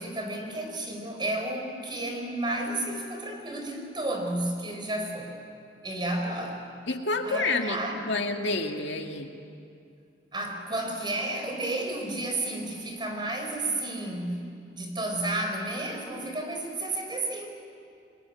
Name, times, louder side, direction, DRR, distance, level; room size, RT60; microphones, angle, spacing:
voice 1, 0.0-5.3 5.8-6.7 7.2-8.0 10.3-14.5 14.7-17.5, right 1 dB, 25° right, 3 dB, 4.3 m, -32 dB
voice 2, 6.9-9.3, left 2 dB, 75° left, 3 dB, 2.2 m, -29 dB
27.5 x 22.0 x 9.9 m, 2.5 s
head